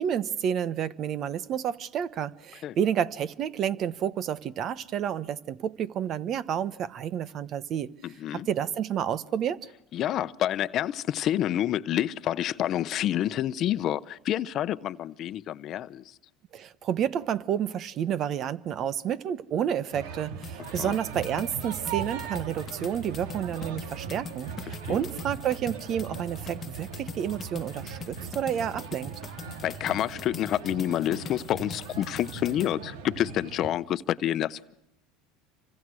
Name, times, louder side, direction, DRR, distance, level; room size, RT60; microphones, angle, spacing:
voice 1, 0.0-7.9 8.3-9.7 16.5-29.1, right 9 dB, 45° right, 1.1 m, -30 dB
voice 2, 8.0-8.5 9.9-16.2 20.8-21.0 24.7-25.0 29.6-34.8, left 12 dB, 45° left, 0.9 m, -28 dB
sound 1, 19.9-33.7, right 6 dB, 85° right, 2.3 m, -39 dB
sound 2, 20.4-32.7, left 6 dB, 30° left, 1.3 m, -43 dB
28.5 x 25.5 x 6.4 m
supercardioid pair, 115°, 0 cm